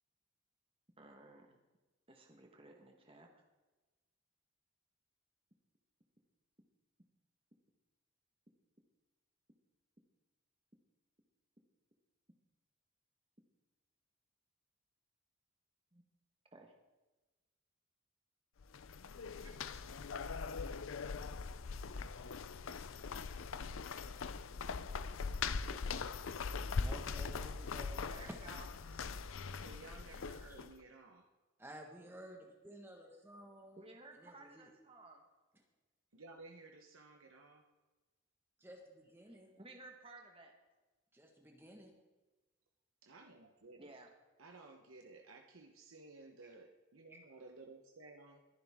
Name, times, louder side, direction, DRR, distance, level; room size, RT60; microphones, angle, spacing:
voice 1, 1.0-1.6 2.1-3.4 15.9-16.0 16.5-16.8 28.1-28.7 33.8-35.2 39.2-40.5 43.8-44.1, right 2 dB, 25° right, 2 dB, 1.3 m, -56 dB
sound 1, 18.6-30.7, left 5 dB, 80° left, 0.5 m, -41 dB
voice 2, 25.6-26.1 29.5-31.3 36.1-37.6 43.0-44.0 44.4-48.4, right 3 dB, 85° right, 3 dB, 1.1 m, -56 dB
voice 3, 26.8-28.1 30.5-30.6 31.6-33.8 34.1-34.7 38.6-39.5 41.1-41.9 47.1-47.2, equal, 10° right, 2 dB, 1.5 m, -54 dB
21.5 x 11.0 x 3.7 m, 1.2 s
head